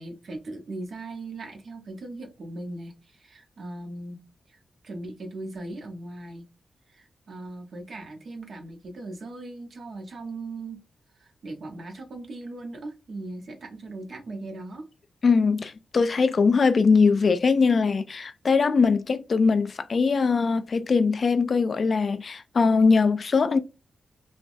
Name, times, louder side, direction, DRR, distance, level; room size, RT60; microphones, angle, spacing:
voice 1, 0.0-4.2 4.5-6.5 6.9-10.8 11.2-14.9, right 2 dB, 65° right, 0.8 m, -39 dB
voice 2, 15.2-23.6, left 4 dB, 55° left, 0.3 m, -21 dB
3.2 x 2.0 x 2.6 m
cardioid pair, 65°, 0 cm